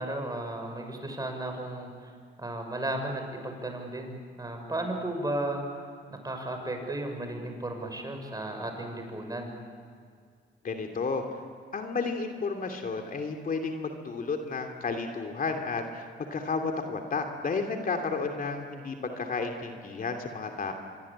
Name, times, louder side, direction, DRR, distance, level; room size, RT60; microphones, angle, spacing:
voice 1, 0.0-2.1 2.4-5.6 6.1-9.5, right 1 dB, 20° right, 4 dB, 6.2 m, -34 dB
voice 2, 10.6-11.2 11.7-20.7, left 4 dB, 45° left, 4 dB, 2.8 m, -32 dB
26.5 x 23.5 x 8.8 m, 2.1 s
cardioid pair, 90°, 20 cm